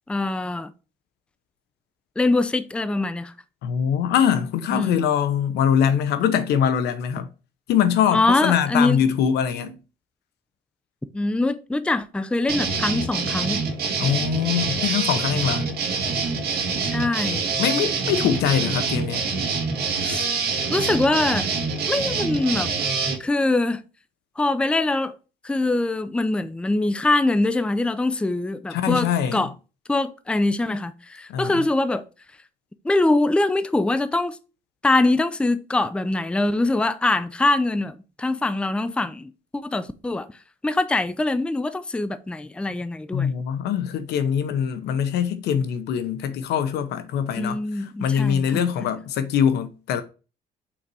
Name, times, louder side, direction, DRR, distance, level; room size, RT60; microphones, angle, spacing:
voice 1, 0.1-0.7 2.2-3.3 4.7-5.0 8.1-9.0 11.1-13.6 16.8-17.5 20.0-20.3 20.7-21.5 21.9-22.7 23.2-23.8 24.4-25.2 25.4-29.5 29.9-32.0 32.8-34.4 34.8-40.3 40.6-43.3 47.4-48.6, left 2 dB, 5° left, 0.5 m, -23 dB
voice 2, 3.6-7.3 7.7-9.8 14.0-15.7 17.6-19.2 28.7-29.5 31.3-31.6 43.1-50.0, left 8 dB, 80° left, 0.9 m, -23 dB
sound 1, 12.5-23.2, right 4 dB, 65° right, 1.8 m, -25 dB
5.9 x 4.0 x 4.7 m
cardioid pair, 110°, 17 cm